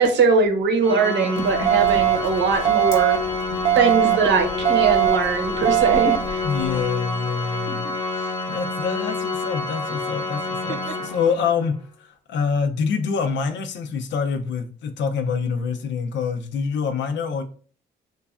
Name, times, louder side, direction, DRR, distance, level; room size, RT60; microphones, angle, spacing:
voice 1, 0.0-3.2 3.7-6.4 7.7-7.9 8.2-8.3, right 4 dB, 65° right, 0.8 m, -21 dB
Organ, 0.8-11.6, left 3 dB, 20° left, 0.7 m, -28 dB
sound 1, 1.4-6.8, left 2 dB, 90° left, 1.0 m, -38 dB
sound 2, 1.7-2.2 2.7-3.2 3.7-4.2 4.7-5.2 5.7-6.2, right 15 dB, 30° right, 0.3 m, -19 dB
voice 2, 6.4-7.9 8.5-17.4, left 5 dB, 65° left, 0.5 m, -26 dB
3.1 x 2.3 x 2.4 m
cardioid pair, 90°, 20 cm